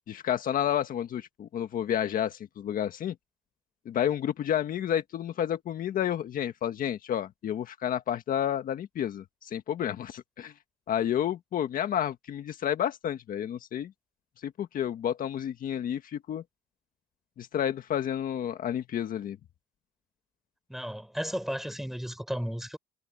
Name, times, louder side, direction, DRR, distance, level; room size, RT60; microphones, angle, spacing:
voice 1, 0.1-3.1 3.8-10.5 10.9-13.9 14.4-16.4 17.4-19.4, left 10 dB, 55° left, 1.7 m, -30 dB
voice 2, 20.7-22.8, equal, ahead, 4.1 m, -34 dB
cardioid pair, 110°, 17 cm